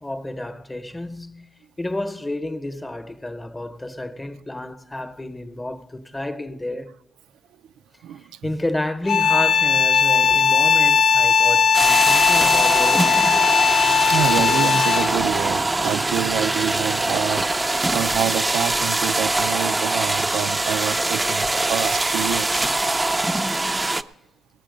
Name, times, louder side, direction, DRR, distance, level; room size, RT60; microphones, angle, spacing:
voice 1, 0.0-1.5 1.8-6.9 8.4-13.5, left 1 dB, 15° left, 0.9 m, -30 dB
sound 1, 9.1-15.3, left 7 dB, 55° left, 0.4 m, -18 dB
sound 2, 11.7-24.0, right 2 dB, 15° right, 0.5 m, -23 dB
voice 2, 14.1-22.6, right 10 dB, 85° right, 0.5 m, -27 dB
18.5 x 9.0 x 5.2 m
cardioid pair, 90°, 0 cm